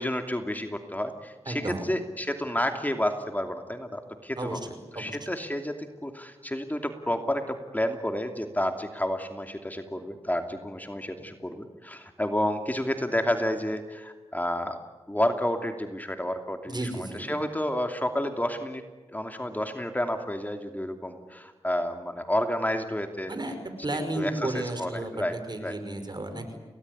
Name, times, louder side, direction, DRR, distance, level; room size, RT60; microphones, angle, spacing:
voice 1, 0.0-4.6 4.9-5.8 6.0-14.8 15.1-18.8 19.1-23.4 24.1-25.4 25.6-25.7, left 1 dB, 15° left, 5 dB, 2.8 m, -30 dB
voice 2, 1.5-1.9 4.4-5.2 16.7-17.3 23.3-23.6 23.8-25.1 25.5-26.6, right 1 dB, 40° right, 8 dB, 5.7 m, -33 dB
29.5 x 18.5 x 9.7 m, 1.3 s
cardioid pair, 55°, 11 cm